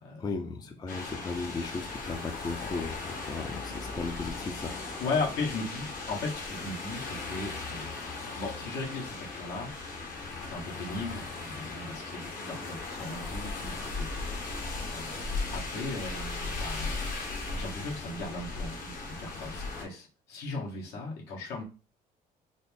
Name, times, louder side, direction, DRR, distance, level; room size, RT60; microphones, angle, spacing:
voice 1, 0.2-5.1, left 4 dB, 25° left, 5 dB, 0.4 m, -36 dB
sound 1, 0.9-19.9, left 3 dB, 55° left, 1.0 m, -37 dB
voice 2, 5.0-7.9 8.4-9.7 10.4-14.1 14.9-15.1 15.5-17.1 17.5-21.6, left 3 dB, 80° left, -2 dB, 1.3 m, -37 dB
4.0 x 2.0 x 3.4 m, 0.34 s
cardioid pair, 110°, 17 cm